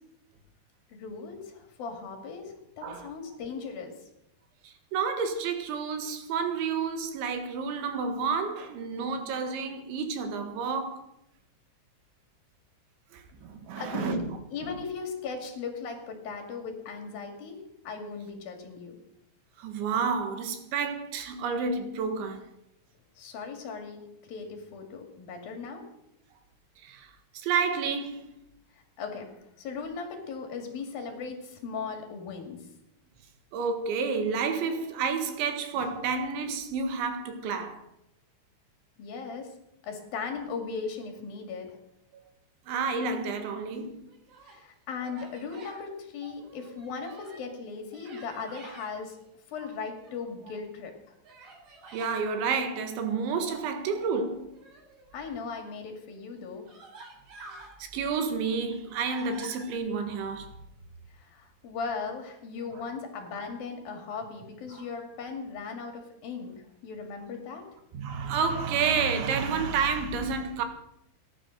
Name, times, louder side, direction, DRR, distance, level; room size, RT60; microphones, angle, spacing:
voice 1, 0.9-3.9 13.8-14.2 14.5-19.0 23.2-25.8 29.0-29.3 29.6-32.7 39.0-39.5 39.8-41.8 44.5-49.2 49.5-51.1 55.1-56.7 61.1-67.7, left 5 dB, 55° left, 3.8 m, -38 dB
voice 2, 4.6-11.1 13.1-14.3 14.6-14.7 19.6-22.5 26.8-28.3 33.5-37.8 42.7-44.1 51.9-54.5 57.8-60.6 62.7-62.8 64.7-64.8 67.9-70.7, right 5 dB, 75° right, 3.9 m, -30 dB
Human voice, 44.0-44.6 45.0-45.8 46.3-47.5 47.9-48.9 49.5-50.3 51.2-52.2 54.5-55.4 56.1-56.2 56.7-57.7 58.2-59.7, right 3 dB, 55° right, 5.3 m, -49 dB
18.0 x 11.0 x 6.6 m
omnidirectional pair, 5.5 m